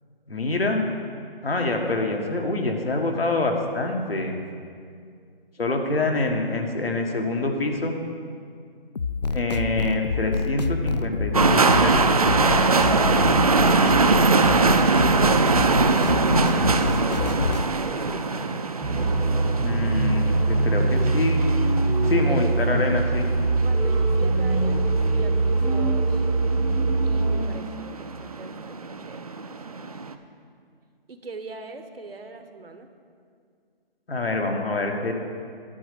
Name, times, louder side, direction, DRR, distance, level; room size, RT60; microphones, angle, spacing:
voice 1, 0.3-0.8 1.4-4.3 5.6-7.9 9.3-12.1 19.6-21.4 22.1-23.3 34.1-35.1, left 2 dB, 75° left, 2 dB, 1.7 m, -26 dB
sound 1, 9.0-17.7, left 4 dB, 45° left, 0.4 m, -27 dB
sound 2, 11.3-30.1, right 4 dB, 40° right, 0.5 m, -23 dB
voice 2, 16.6-18.5 22.1-22.5 23.6-26.2 27.0-29.2 29.7-29.9 31.1-32.9, right 3 dB, 70° right, 7 dB, 1.1 m, -41 dB
sound 3, 18.8-27.4, right 3 dB, 5° left, 0.7 m, -22 dB
11.0 x 5.1 x 8.2 m, 2.2 s
figure-of-eight pair, 155°, 30 cm